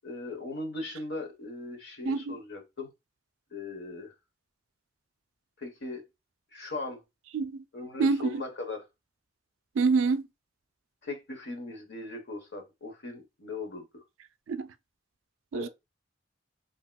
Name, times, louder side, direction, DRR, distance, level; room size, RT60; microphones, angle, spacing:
voice 1, 0.0-2.9 3.5-4.1 5.6-6.0 6.5-7.0 7.7-8.9 11.0-14.0 15.5-15.7, left 2 dB, 60° left, 0.9 m, -39 dB
voice 2, 2.1-2.4 7.3-7.6 8.0-8.4 9.8-10.2 14.5-14.7 15.5-15.7, right 4 dB, 80° right, 0.4 m, -26 dB
3.3 x 2.8 x 2.2 m
head